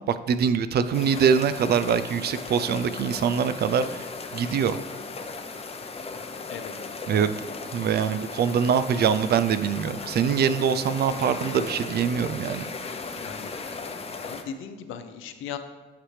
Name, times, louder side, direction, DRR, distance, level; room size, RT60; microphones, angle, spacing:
voice 1, 0.1-4.1 4.3-4.8 7.1-7.4 7.7-12.7, right 7 dB, 55° right, 12 dB, 0.4 m, -24 dB
sound 1, 0.9-14.4, left 4 dB, 30° left, 0.7 m, -37 dB
voice 2, 13.2-13.5 14.1-15.6, left 8 dB, 85° left, 8 dB, 0.6 m, -38 dB
8.7 x 4.9 x 3.2 m, 1.2 s
cardioid pair, 90°, 20 cm